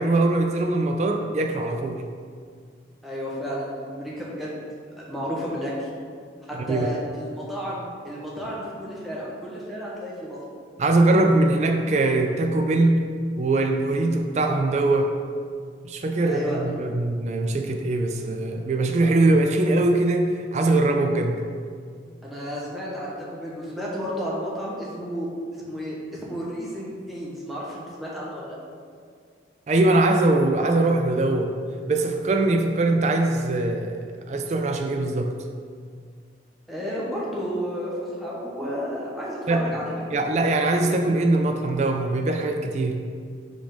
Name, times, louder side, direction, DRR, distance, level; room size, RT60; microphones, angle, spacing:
voice 1, 0.0-2.0 6.5-6.9 10.8-13.0 13.4-15.1 15.8-21.4 29.7-31.5 31.9-34.0 34.3-35.3 39.5-39.7 40.1-43.0, right 2 dB, 40° right, 4 dB, 0.3 m, -22 dB
voice 2, 3.0-4.6 5.0-5.9 6.5-10.4 16.2-16.6 22.2-28.6 36.7-40.0, equal, ahead, -7 dB, 1.0 m, -32 dB
4.9 x 3.7 x 5.2 m, 2.1 s
head